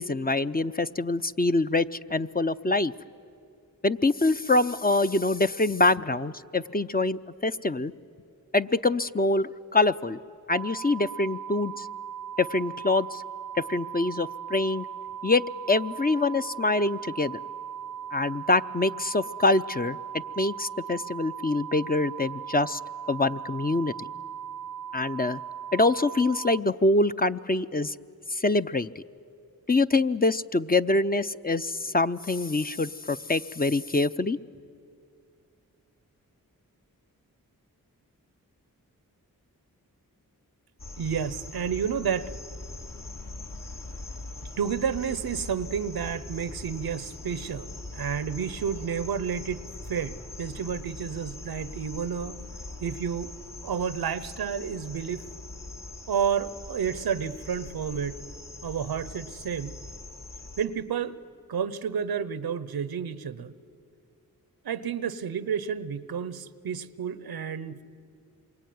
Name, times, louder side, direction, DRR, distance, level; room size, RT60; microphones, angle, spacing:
voice 1, 0.0-2.9 3.8-7.9 8.5-10.2 10.5-11.9 12.4-13.2 13.6-14.9 15.2-15.4 15.7-17.4 18.1-22.8 23.1-23.9 24.9-25.4 25.7-28.0 28.3-28.9 29.7-34.4, left 2 dB, 25° left, 11 dB, 0.7 m, -25 dB
sound 1, 10.5-26.6, right 8 dB, 65° right, 0.7 m, -38 dB
sound 2, 40.8-60.7, left 2 dB, 60° left, 3.0 m, -42 dB
voice 2, 41.0-42.3 44.6-49.6 49.9-52.4 52.8-53.3 53.6-55.3 56.1-58.2 58.6-59.8 60.6-61.2 61.5-63.5 64.6-67.8, right 7 dB, 90° right, 16 dB, 0.9 m, -30 dB
27.0 x 23.5 x 9.5 m, 2.5 s
cardioid pair, 40°, 36 cm